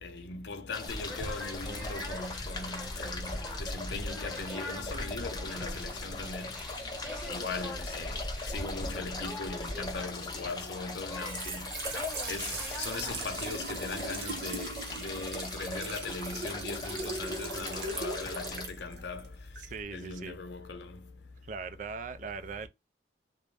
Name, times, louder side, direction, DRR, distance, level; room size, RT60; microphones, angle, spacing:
voice 1, 0.0-6.5 7.3-8.2 8.5-11.7 12.3-19.3 19.9-21.0, left 3 dB, 75° left, 0.7 m, -39 dB
sound 1, 0.7-18.7, left 3 dB, 20° left, 0.5 m, -40 dB
sound 2, 0.9-13.1, equal, ahead, 1.4 m, -41 dB
Trickle dribble / Fill (with liquid), 11.0-19.8, right 3 dB, 65° right, 0.7 m, -39 dB
voice 2, 19.6-20.4 21.5-22.7, right 5 dB, 45° right, 0.3 m, -40 dB
2.5 x 2.1 x 3.2 m
head